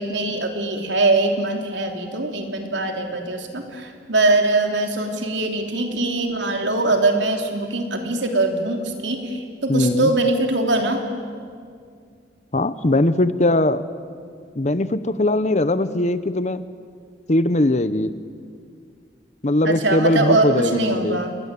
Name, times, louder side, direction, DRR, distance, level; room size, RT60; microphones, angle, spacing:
voice 1, 0.0-11.0 19.6-21.3, right 2 dB, 70° right, 4 dB, 3.2 m, -22 dB
voice 2, 9.7-10.1 12.5-13.8 14.6-16.6 17.3-18.1 19.4-21.2, left 1 dB, 35° left, 14 dB, 0.8 m, -20 dB
28.5 x 22.5 x 8.4 m, 2.2 s
head